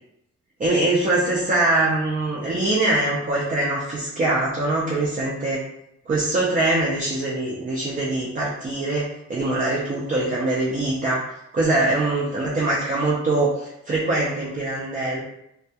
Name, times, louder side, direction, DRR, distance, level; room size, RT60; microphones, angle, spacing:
voice 1, 0.6-5.6 6.1-11.2 11.5-15.2, right 2 dB, 30° right, -5 dB, 0.4 m, -23 dB
2.2 x 2.2 x 2.7 m, 0.79 s
cardioid pair, 115°, 30 cm